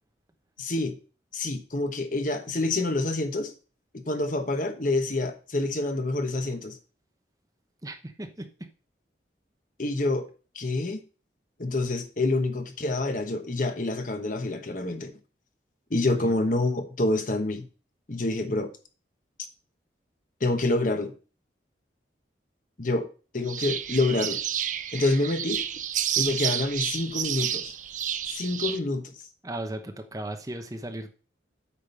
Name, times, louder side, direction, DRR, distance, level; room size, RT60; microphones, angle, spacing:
voice 1, 0.6-1.0 1.3-3.5 4.1-6.8 9.8-10.3 10.5-11.0 11.6-15.1 15.9-17.7 18.1-18.7 20.4-21.1 22.8-23.1 23.3-24.4 24.9-25.6 26.2-27.7 28.3-29.1, left 2 dB, 45° left, 1.1 m, -27 dB
voice 2, 7.8-8.5 16.1-16.3 29.4-31.1, right 1 dB, 20° right, 0.9 m, -36 dB
sound 1, 23.5-28.8, right 10 dB, 45° right, 0.5 m, -30 dB
8.6 x 5.2 x 5.4 m
head